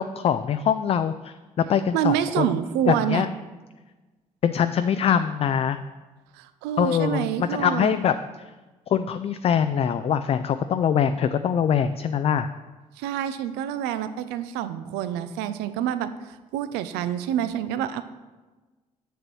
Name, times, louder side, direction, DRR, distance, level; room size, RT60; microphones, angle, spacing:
voice 1, 0.0-2.5 2.9-3.3 4.4-5.8 6.8-8.2 8.9-12.5, left 8 dB, 30° left, 10 dB, 0.4 m, -23 dB
voice 2, 1.9-3.3 6.3-8.0 13.0-18.0, right 10 dB, 60° right, 12 dB, 0.5 m, -27 dB
10.0 x 7.4 x 3.1 m, 1.2 s
figure-of-eight pair, 45°, 19 cm